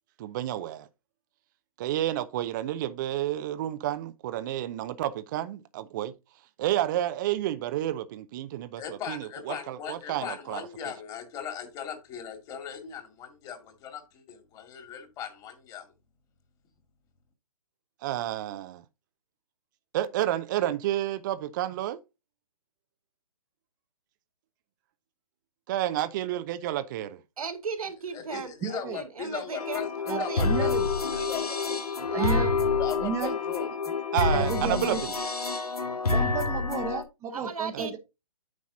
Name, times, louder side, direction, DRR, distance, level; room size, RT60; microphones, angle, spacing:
voice 1, 0.2-0.9 1.8-6.1 6.6-10.6 18.0-18.8 19.9-22.0 25.7-27.2 34.1-35.1 37.7-37.9, right 13 dB, 30° right, 0.7 m, -30 dB
voice 2, 8.8-15.9 28.1-29.9 30.2-32.2 32.8-33.7, left 8 dB, 20° left, 2.2 m, -38 dB
voice 3, 27.4-30.5 32.1-32.6 37.3-38.0, right 5 dB, 70° right, 2.0 m, -36 dB
voice 4, 28.6-29.0 30.1-30.8 32.1-32.5 33.0-33.3 34.3-35.0 36.1-38.0, right 7 dB, 15° right, 1.0 m, -32 dB
sound 1, 29.6-37.0, left 4 dB, 80° left, 1.9 m, -28 dB
9.5 x 6.1 x 2.7 m
figure-of-eight pair, 135°, 19 cm